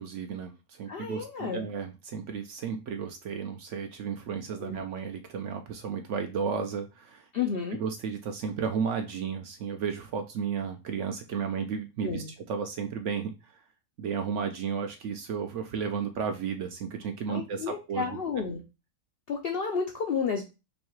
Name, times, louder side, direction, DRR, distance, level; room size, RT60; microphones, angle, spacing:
voice 1, 0.0-7.3 7.7-13.6 14.0-18.2, right 6 dB, 65° right, 6 dB, 0.8 m, -33 dB
voice 2, 0.9-1.6 4.6-4.8 7.3-7.8 12.0-12.3 17.3-18.6 19.3-20.4, left 6 dB, 70° left, 2 dB, 0.5 m, -31 dB
3.1 x 2.7 x 4.4 m, 0.28 s
omnidirectional pair, 1.6 m